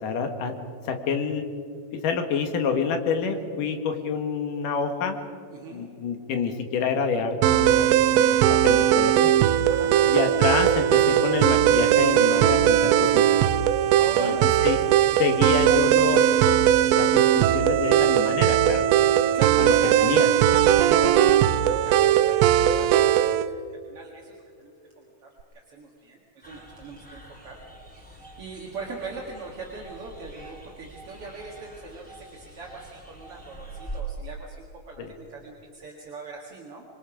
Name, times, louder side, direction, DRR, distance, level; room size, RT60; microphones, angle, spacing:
voice 1, 0.0-1.4 1.9-5.2 5.7-9.3 10.1-13.4 14.2-14.9 15.2-16.5 16.9-18.8 19.6-19.7 20.0-20.3 35.0-35.1, left 5 dB, 60° left, 6 dB, 2.7 m, -28 dB
voice 2, 5.5-5.8 9.6-9.9 13.7-15.0 19.2-20.0 20.5-23.3 23.7-25.3 25.7-27.6 27.9-36.8, right 3 dB, 45° right, -1 dB, 2.0 m, -40 dB
sound 1, 7.4-23.5, right 11 dB, 90° right, 2.9 m, -19 dB
sound 2, 26.4-34.0, right 1 dB, ahead, 2.4 m, -45 dB
26.5 x 23.0 x 5.1 m, 2.3 s
omnidirectional pair, 4.9 m